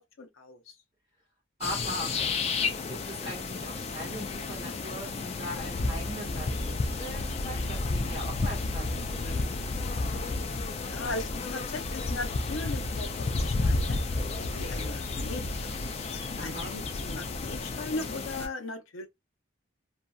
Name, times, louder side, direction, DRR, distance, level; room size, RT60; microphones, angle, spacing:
voice 1, 0.2-0.8 10.8-19.1, left 2 dB, 80° left, 0.6 m, -39 dB
sound 1, 1.6-18.5, left 3 dB, 30° left, 0.3 m, -32 dB
voice 2, 1.6-2.2 2.9-9.6 16.4-16.7, equal, 25° right, 1.4 m, -40 dB
2.7 x 2.6 x 2.2 m
head